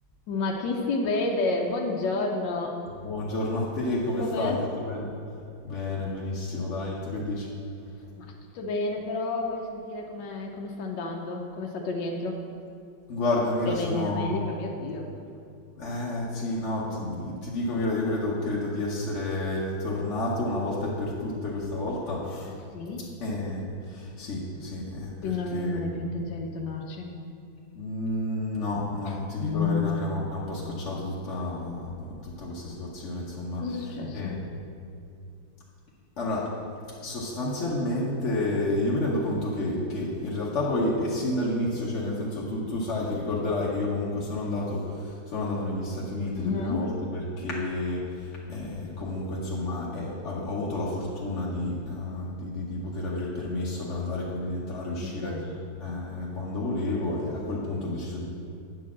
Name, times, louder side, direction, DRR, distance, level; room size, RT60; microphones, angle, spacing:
voice 1, 0.3-2.8 4.2-4.6 8.2-12.4 13.7-15.1 22.7-23.0 25.2-27.1 29.1-29.2 29.4-30.1 33.6-34.4 46.3-46.9 55.0-55.4, left 3 dB, 75° left, 0 dB, 1.4 m, -30 dB
voice 2, 3.0-5.1 5.6-7.5 13.1-14.4 15.8-22.5 23.2-25.8 27.7-33.6 34.1-34.4 36.2-36.5 37.0-55.3 55.8-58.3, left 2 dB, 45° left, -6 dB, 1.2 m, -30 dB
9.1 x 4.7 x 7.2 m, 2.4 s
omnidirectional pair, 2.0 m